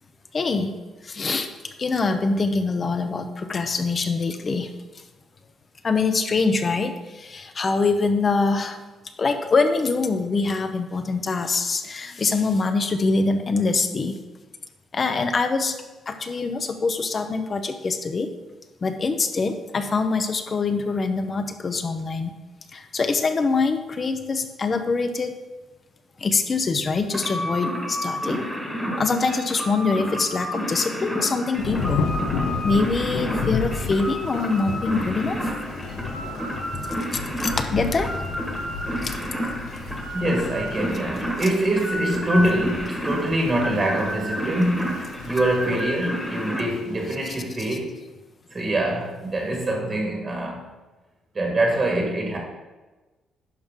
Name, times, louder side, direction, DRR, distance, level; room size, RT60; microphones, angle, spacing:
voice 1, 0.3-0.7 1.0-1.5 1.8-4.7 5.8-8.8 9.2-14.2 14.9-15.7 16.1-18.3 18.8-22.3 22.7-25.3 26.2-28.4 29.0-32.1 32.6-35.4 37.4-38.1 39.0-39.1, left 4 dB, 30° left, 8 dB, 0.7 m, -24 dB
sound 1, 27.1-46.6, equal, ahead, 1.4 m, -31 dB
Thunder / Rain, 31.6-47.2, left 4 dB, 85° left, 1.2 m, -33 dB
voice 2, 40.1-47.9 48.5-50.7 51.3-52.4, right 1 dB, 25° right, 0 dB, 1.4 m, -24 dB
10.5 x 5.9 x 3.7 m, 1.2 s
cardioid pair, 155°, 0 cm